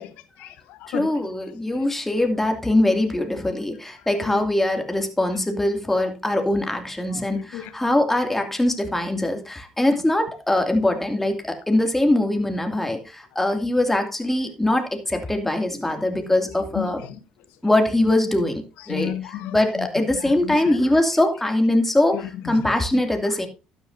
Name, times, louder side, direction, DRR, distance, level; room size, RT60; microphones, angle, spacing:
voice 1, 0.0-1.1 1.7-1.8 4.2-4.4 5.9-6.1 6.7-6.8 7.1-7.7 14.7-14.8 16.1-16.4 16.7-17.2 17.6-17.7 18.8-20.8 22.1-23.5, left 11 dB, 80° left, 1.3 m, -35 dB
voice 2, 0.9-17.0 17.6-19.1 19.5-22.2 22.4-23.5, left 1 dB, 10° left, 2.5 m, -22 dB
12.0 x 10.0 x 2.7 m
supercardioid pair, 85°, 3 cm